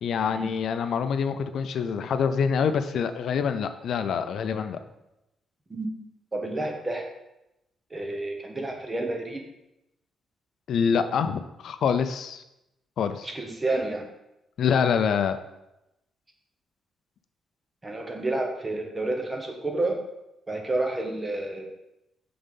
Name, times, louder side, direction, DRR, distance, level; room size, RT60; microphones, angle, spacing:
voice 1, 0.0-4.8 10.7-12.4 13.0-13.3 14.6-15.4, left 6 dB, 65° left, 10 dB, 0.5 m, -25 dB
voice 2, 6.3-7.1 7.9-9.4 13.2-14.1 17.8-20.0 20.5-21.7, right 2 dB, 20° right, 2 dB, 1.0 m, -30 dB
5.4 x 3.9 x 5.4 m, 0.90 s
cardioid pair, 130°, 0 cm